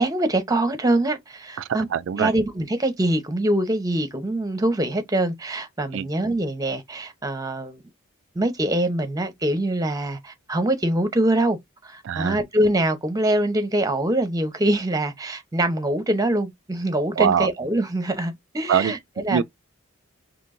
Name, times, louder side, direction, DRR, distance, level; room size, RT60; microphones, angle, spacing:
voice 1, 0.0-1.9 2.2-7.8 8.3-11.6 11.8-19.4, right 1 dB, 15° right, 0.8 m, -24 dB
voice 2, 1.6-2.3 5.9-6.1 12.0-12.4 17.2-17.5 18.7-18.9 19.3-19.4, right 7 dB, 60° right, 0.3 m, -23 dB
4.4 x 3.3 x 2.5 m
head